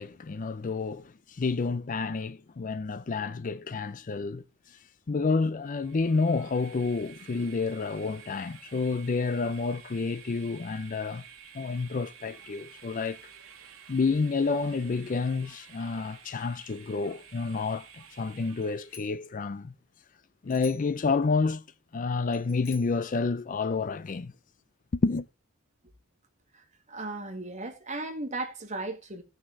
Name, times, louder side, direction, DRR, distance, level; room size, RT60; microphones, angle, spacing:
voice 1, 0.0-4.4 5.1-11.2 11.5-13.2 13.9-19.7 20.4-21.6 21.9-24.3 24.9-25.3, left 4 dB, 35° left, 0.4 m, -29 dB
Train, 5.6-19.1, right 8 dB, 70° right, 1.9 m, -51 dB
Bicycle bell, 18.6-19.3 20.5-21.0 22.3-23.1, left 7 dB, 60° left, 1.3 m, -50 dB
voice 2, 26.5-29.2, right 2 dB, 35° right, 2.0 m, -36 dB
16.0 x 6.3 x 3.6 m
head